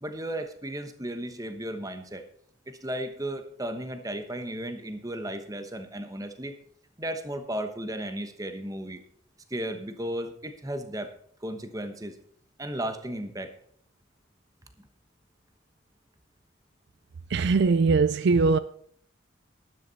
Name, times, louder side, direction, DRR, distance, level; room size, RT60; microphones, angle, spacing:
voice 1, 0.0-2.2 2.7-6.5 7.0-9.0 9.5-11.1 11.4-12.1 12.6-13.5, right 1 dB, 15° right, 1.1 m, -35 dB
voice 2, 17.3-18.6, right 4 dB, 55° right, 0.4 m, -21 dB
12.5 x 11.0 x 4.1 m
head